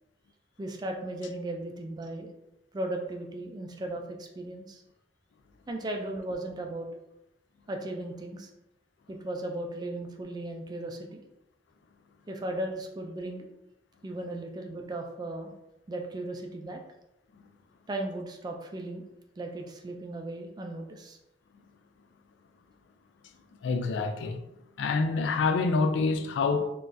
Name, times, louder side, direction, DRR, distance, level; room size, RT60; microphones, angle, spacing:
voice 1, 0.6-2.3 2.7-4.8 5.7-6.9 7.7-8.5 9.1-11.2 12.3-13.5 14.0-15.5 15.9-16.8 17.9-19.0 19.4-21.2, right 1 dB, 20° right, 0.3 m, -36 dB
voice 2, 23.6-24.4 24.8-26.7, left 4 dB, 70° left, 0.3 m, -26 dB
3.7 x 2.3 x 2.5 m
head